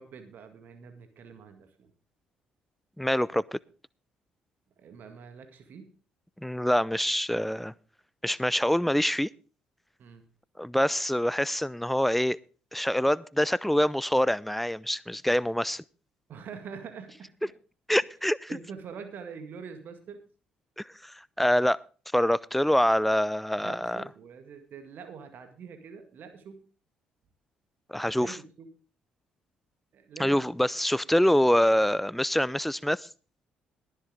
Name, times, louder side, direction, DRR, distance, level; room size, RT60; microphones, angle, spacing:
voice 1, 0.0-1.9 4.8-5.9 10.0-10.2 16.3-17.5 18.5-20.2 23.6-26.6 28.1-28.7 29.9-30.5, right 6 dB, 50° right, 1.9 m, -45 dB
voice 2, 3.0-3.6 6.4-7.7 8.2-9.3 10.6-12.4 12.7-15.8 17.9-18.5 20.8-21.8 22.1-24.0 27.9-28.4 30.2-33.1, equal, 5° left, 0.5 m, -25 dB
21.0 x 7.5 x 3.7 m
figure-of-eight pair, 45°, 4 cm